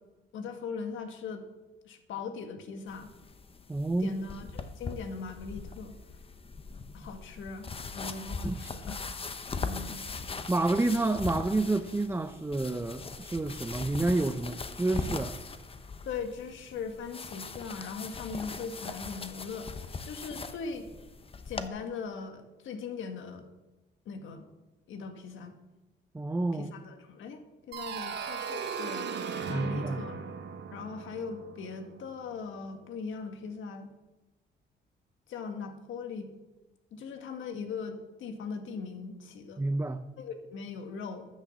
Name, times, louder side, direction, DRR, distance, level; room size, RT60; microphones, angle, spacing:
voice 1, 0.3-1.4 1.8-3.1 4.0-5.9 6.9-7.7 7.9-9.0 9.6-10.1 16.0-20.9 21.4-23.5 24.0-24.4 24.9-25.6 26.5-27.4 27.7-29.1 29.5-30.2 30.7-33.9 35.3-36.3 36.9-39.6 40.2-41.3, left 5 dB, 75° left, 1.6 m, -40 dB
sound 1, 2.9-21.7, left 4 dB, 30° left, 0.9 m, -40 dB
voice 2, 3.7-4.1 8.4-8.7 10.5-15.4 26.1-26.7 29.5-30.0 39.6-40.0, right 2 dB, 10° right, 0.5 m, -29 dB
sound 2, 27.7-32.4, right 6 dB, 65° right, 1.1 m, -38 dB
9.6 x 6.6 x 7.1 m
cardioid pair, 90°, 20 cm